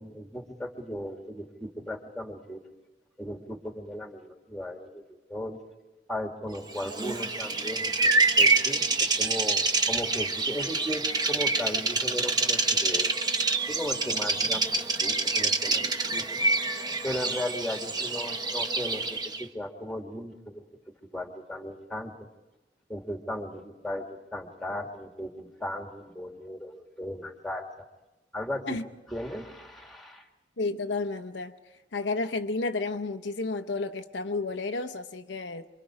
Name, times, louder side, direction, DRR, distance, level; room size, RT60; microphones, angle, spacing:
voice 1, 0.0-2.6 3.2-5.0 5.3-5.6 6.1-13.1 13.7-16.3 17.0-20.6 21.0-22.2 22.9-27.6 28.3-28.8 29.1-30.2, left 1 dB, ahead, 2.1 m, -36 dB
Bird vocalization bird call bird song, 6.8-19.4, right 3 dB, 25° right, 1.1 m, -26 dB
voice 2, 30.6-31.5 31.9-35.7, left 3 dB, 75° left, 0.8 m, -31 dB
27.5 x 24.0 x 4.9 m
head